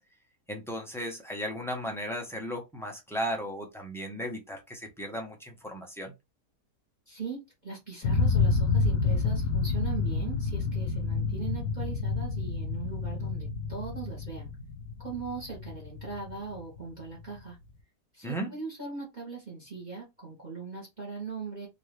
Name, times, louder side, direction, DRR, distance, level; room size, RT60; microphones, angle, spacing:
voice 1, 0.5-6.1 18.2-18.5, equal, 5° left, 0.6 m, -35 dB
voice 2, 7.1-14.5 15.0-17.6 18.1-21.7, right 5 dB, 30° right, 1.5 m, -40 dB
sound 1, 8.0-16.9, left 4 dB, 90° left, 1.2 m, -29 dB
3.7 x 2.9 x 3.2 m
omnidirectional pair, 1.7 m